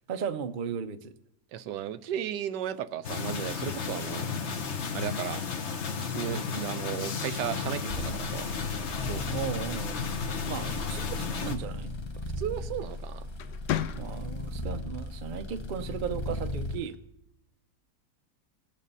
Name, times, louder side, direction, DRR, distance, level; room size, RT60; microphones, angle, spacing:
voice 1, 0.1-1.1 6.3-6.5 8.9-9.0 9.3-10.0 10.5-11.9 13.9-17.0, right 7 dB, 55° right, 9 dB, 0.5 m, -36 dB
voice 2, 1.5-4.3 4.9-5.4 6.1-8.5 9.1-9.2 12.4-13.2, right 10 dB, 85° right, 12 dB, 1.3 m, -35 dB
sound 1, 3.0-11.6, left 5 dB, 50° left, 1.1 m, -33 dB
sound 2, 7.9-16.8, left 1 dB, 25° left, 0.6 m, -37 dB
sound 3, 9.8-11.2 12.7-12.9 13.3-14.5, left 12 dB, 80° left, 1.2 m, -36 dB
18.5 x 7.4 x 5.5 m, 0.83 s
omnidirectional pair, 1.8 m